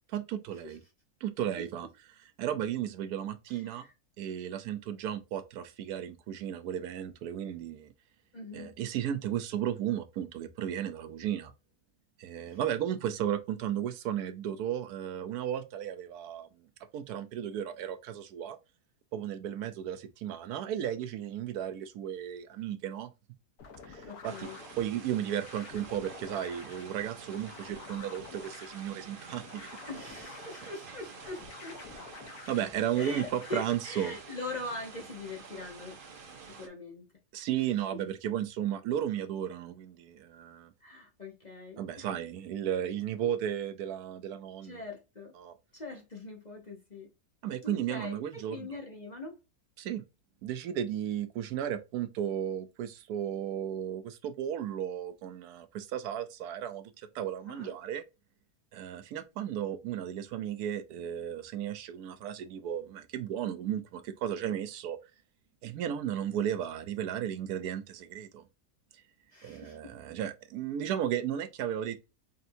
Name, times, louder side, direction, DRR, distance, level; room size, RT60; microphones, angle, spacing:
voice 1, 0.1-0.8 1.2-1.9 2.4-3.8 4.2-7.9 8.5-11.5 12.2-16.7 16.9-18.6 19.1-23.1 23.9-24.5 24.8-29.7 32.5-34.2 37.3-40.7 41.8-44.8 45.4-45.5 47.4-48.7 49.8-50.0 50.4-58.0 58.7-65.0 65.6-68.4 68.9-69.0 69.4-72.0, right 10 dB, 80° right, 1.1 m, -34 dB
voice 2, 3.5-3.9 8.3-8.7 12.5-12.6 24.0-24.6 29.9-31.8 32.9-36.0 36.5-37.0 40.8-42.1 44.6-45.3 45.7-47.1 47.6-49.4 57.5-57.7 69.3-69.9, left 2 dB, 35° left, 0.8 m, -42 dB
sound 1, 23.6-33.7, left 5 dB, 75° left, 1.4 m, -50 dB
sound 2, 24.2-36.7, right 5 dB, 45° right, 0.8 m, -49 dB
5.3 x 2.7 x 2.6 m
omnidirectional pair, 1.7 m